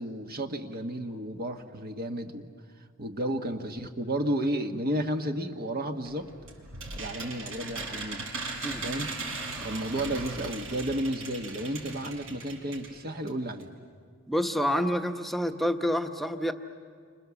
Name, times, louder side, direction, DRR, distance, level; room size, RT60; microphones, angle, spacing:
voice 1, 0.0-2.5 3.0-6.3 6.9-8.3 8.8-9.1 9.6-13.7, right 1 dB, 45° right, 5 dB, 1.4 m, -32 dB
sound 1, 6.0-12.9 13.3-13.4 13.6-13.7, right 3 dB, 70° right, 4.8 m, -38 dB
voice 2, 8.6-9.0 14.3-16.5, equal, ahead, 5 dB, 1.0 m, -28 dB
30.0 x 26.0 x 7.1 m, 2.1 s
head